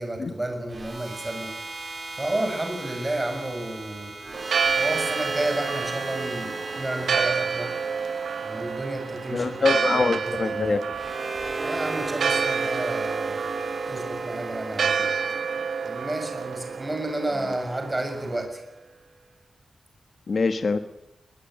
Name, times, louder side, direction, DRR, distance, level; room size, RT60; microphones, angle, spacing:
voice 1, 0.0-1.5 2.2-4.1 4.8-7.7 8.4-10.8 11.6-13.4 13.9-15.1 15.8-18.6, right 1 dB, 15° right, 4 dB, 6.2 m, -31 dB
sound 1, 0.7-18.9, right 3 dB, 35° right, 3.8 m, -35 dB
Church bell, 4.3-18.4, right 6 dB, 80° right, 1.3 m, -29 dB
voice 2, 9.3-10.8 20.3-20.8, left 4 dB, 45° left, 9 dB, 1.1 m, -24 dB
21.0 x 20.5 x 9.0 m, 0.90 s
wide cardioid pair, 150°, 0 cm